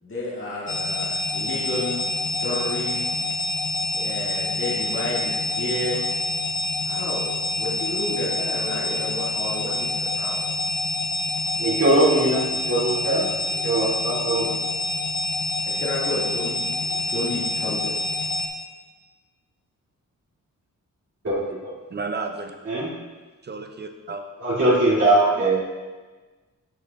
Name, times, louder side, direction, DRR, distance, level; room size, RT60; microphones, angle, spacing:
voice 1, 0.0-2.0 2.4-3.1 3.9-6.1 6.8-7.3 7.5-9.9 10.2-10.5 15.6-16.6 16.9-17.9, left 1 dB, 40° left, -7 dB, 1.8 m, -31 dB
sound 1, 0.7-18.5, left 2 dB, 85° left, 0.9 m, -27 dB
voice 2, 11.6-13.3 13.6-14.5 21.2-21.7 22.6-22.9 24.4-25.6, right 2 dB, 50° right, -8 dB, 2.3 m, -21 dB
voice 3, 21.9-22.5 23.4-24.4 24.7-24.8 25.1-25.5, right 3 dB, 30° right, 6 dB, 0.5 m, -33 dB
12.5 x 5.0 x 2.3 m, 1.3 s
wide cardioid pair, 115°, 33 cm